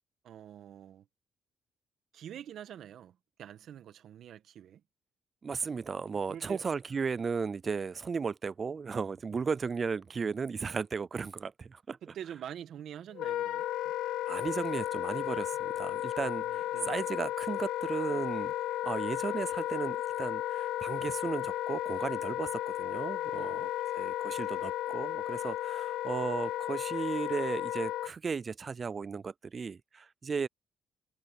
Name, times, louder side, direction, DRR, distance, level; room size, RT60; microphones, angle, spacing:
voice 1, 0.2-1.1 2.1-4.8 6.3-6.6 12.0-13.6 16.2-17.0 23.3-23.7, right 10 dB, 70° right, 1.4 m, -46 dB
voice 2, 5.4-12.0 14.1-18.5 18.8-30.5, right 5 dB, 40° right, 0.4 m, -35 dB
Wind instrument woodwind instrument, 13.1-28.1, left 13 dB, 85° left, 0.5 m, -34 dB
cardioid pair, 90°, 0 cm